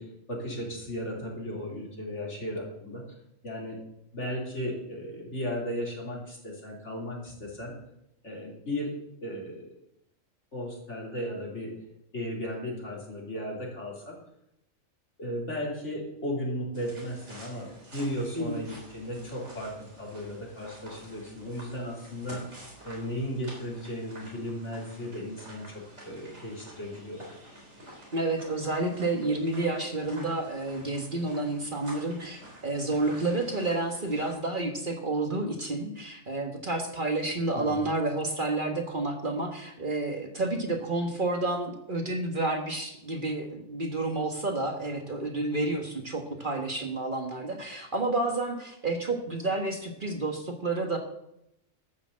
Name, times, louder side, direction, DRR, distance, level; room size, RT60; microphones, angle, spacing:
voice 1, 0.0-3.0 3.4-3.8 4.1-7.7 8.2-9.7 10.5-11.7 12.1-14.2 15.2-22.4 22.8-27.2 37.5-37.9, equal, 60° left, -2 dB, 3.7 m, -35 dB
sound 1, 16.7-34.3, right 1 dB, 55° right, 4.4 m, -49 dB
voice 2, 28.1-51.0, right 2 dB, 40° right, 3 dB, 1.5 m, -30 dB
13.0 x 6.9 x 7.3 m, 0.80 s
omnidirectional pair, 1.4 m